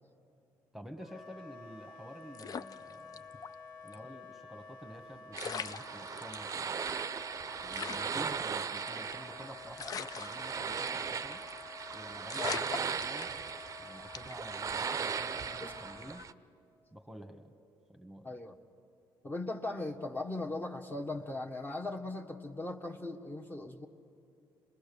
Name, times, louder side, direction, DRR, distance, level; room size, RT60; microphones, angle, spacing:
voice 1, 0.7-3.2 3.8-6.8 7.6-11.4 11.9-13.3 13.8-16.2 16.9-17.5 17.9-18.4, equal, 5° right, 5 dB, 1.4 m, -49 dB
Wind instrument woodwind instrument, 1.0-16.3, left 4 dB, 60° left, 1.4 m, -51 dB
sound 1, 2.3-3.5 3.9-4.0 5.0-5.1 5.3-6.5 7.0-7.1 7.3-7.4 7.7-9.3 9.8-11.0 11.3-11.6 11.9-12.0 12.3-13.7 14.1-14.5, left 6 dB, 45° left, 0.5 m, -41 dB
sound 2, 5.3-16.3, right 6 dB, 35° right, 0.6 m, -38 dB
voice 2, 18.2-18.6 19.2-23.9, left 2 dB, 20° left, 2 dB, 1.4 m, -39 dB
26.0 x 20.5 x 7.0 m, 2.6 s
cardioid pair, 90°, 9 cm